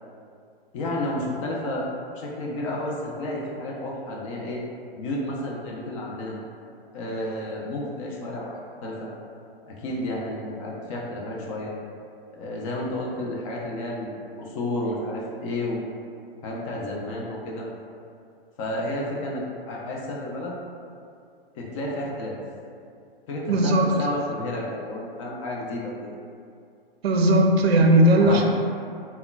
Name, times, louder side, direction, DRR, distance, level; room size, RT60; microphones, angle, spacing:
voice 1, 0.7-1.9 2.1-4.6 4.9-6.4 6.9-9.1 9.7-11.7 12.3-15.8 16.4-17.7 18.6-20.6 21.6-22.4 23.3-26.2 28.2-28.4, left 1 dB, 35° left, -3 dB, 0.4 m, -31 dB
voice 2, 23.5-24.1 27.0-28.4, right 1 dB, 80° right, 2 dB, 0.5 m, -18 dB
3.6 x 2.1 x 2.2 m, 2.4 s
hypercardioid pair, 115°, 30 cm